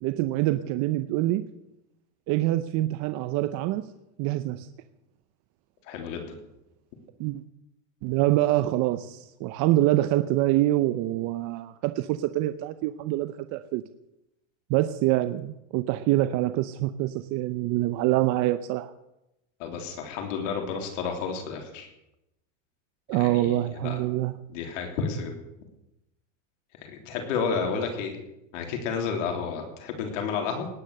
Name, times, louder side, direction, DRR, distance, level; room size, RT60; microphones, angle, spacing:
voice 1, 0.0-1.5 2.3-3.9 4.2-4.7 7.2-7.4 8.0-13.8 14.7-18.9 23.1-24.3, right 15 dB, 50° right, 11 dB, 0.7 m, -25 dB
voice 2, 5.9-6.4 19.6-21.9 23.1-23.6 23.8-24.0 24.5-25.4 26.8-28.1 28.5-30.7, left 5 dB, 75° left, 3 dB, 3.6 m, -31 dB
18.5 x 9.6 x 6.7 m, 0.90 s
supercardioid pair, 130°, 38 cm